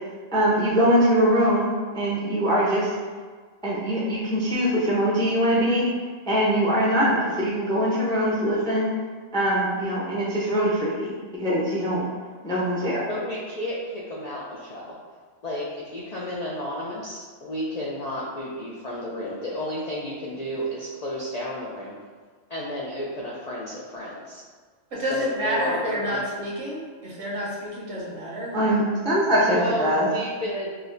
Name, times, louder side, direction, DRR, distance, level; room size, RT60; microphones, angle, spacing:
voice 1, 0.3-2.9 3.6-5.8 6.3-8.9 9.3-11.1 11.4-12.0 12.4-13.0 28.5-30.1, equal, 5° left, -6 dB, 0.3 m, -22 dB
voice 2, 13.1-14.9 15.4-21.9 22.5-24.4 25.1-26.3 29.5-30.7, left 1 dB, 85° left, -5 dB, 0.3 m, -32 dB
voice 3, 25.0-28.5, equal, 70° right, -6 dB, 1.3 m, -29 dB
5.2 x 2.1 x 2.5 m, 1.5 s
omnidirectional pair, 1.4 m